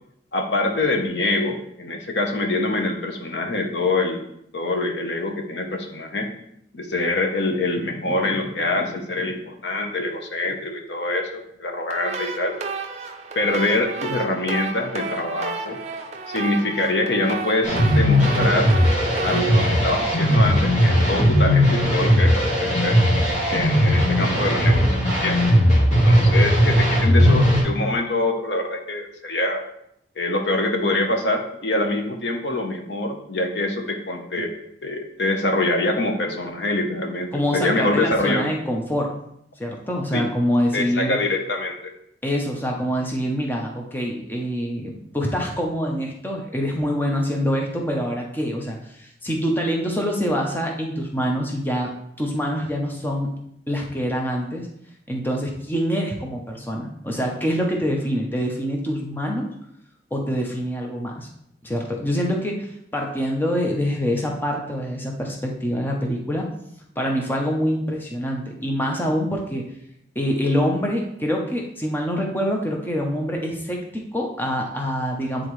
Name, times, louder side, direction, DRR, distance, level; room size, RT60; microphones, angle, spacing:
voice 1, 0.3-4.2 4.5-6.3 6.7-12.6 13.3-15.8 16.3-18.7 19.2-23.0 23.5-25.4 26.0-29.6 30.2-34.5 34.8-38.5 40.1-40.3 40.7-41.9, left 2 dB, 80° left, 4 dB, 0.9 m, -24 dB
sound 1, 11.9-21.0, right 4 dB, 40° right, 0.6 m, -32 dB
sound 2, 17.6-27.6, equal, 40° left, 1.9 m, -18 dB
voice 2, 37.3-39.1 39.6-41.2 42.2-51.9 52.2-53.3 53.7-54.7 55.1-59.5 60.1-61.3 61.6-66.5 67.0-69.6 70.2-75.5, equal, 10° left, 0 dB, 0.7 m, -25 dB
9.3 x 3.8 x 3.1 m, 0.74 s
head